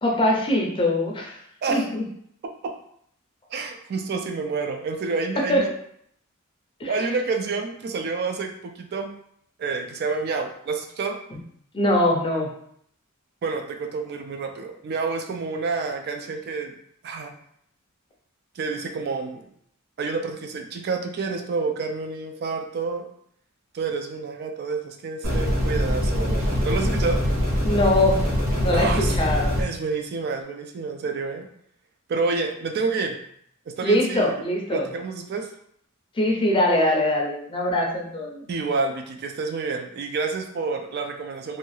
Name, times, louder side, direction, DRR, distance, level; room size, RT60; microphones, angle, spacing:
voice 1, 0.0-1.4 1.7-2.0 5.5-5.6 6.8-6.9 11.7-12.5 27.6-28.2 28.6-29.5 33.8-34.8 36.2-38.4, left 1 dB, 25° left, -1 dB, 0.5 m, -22 dB
voice 2, 3.5-5.7 6.9-9.1 9.6-11.2 13.4-16.8 17.0-17.3 18.6-19.5 20.0-23.1 23.7-27.2 28.7-29.1 29.6-31.5 32.1-33.2 33.7-34.4 34.7-35.5 38.5-41.6, right 4 dB, 50° right, 4 dB, 0.3 m, -28 dB
sound 1, 25.2-29.6, equal, 90° right, 1.0 m, -23 dB
2.7 x 2.3 x 3.1 m, 0.67 s
head